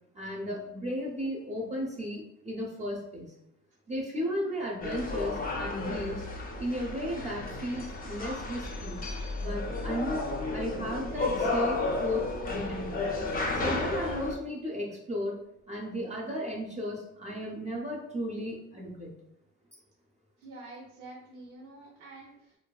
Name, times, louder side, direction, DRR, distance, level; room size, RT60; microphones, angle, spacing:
voice 1, 0.1-3.3 3.9-6.2 6.6-9.0 9.4-13.0 13.5-15.4 15.7-19.1, equal, 25° right, -2 dB, 0.5 m, -34 dB
sound 1, 4.8-14.4, left 2 dB, 30° left, 0.4 m, -33 dB
voice 2, 20.4-22.6, right 2 dB, 85° right, -3 dB, 0.7 m, -47 dB
2.6 x 2.2 x 2.2 m, 0.78 s
cardioid pair, 90°, 30 cm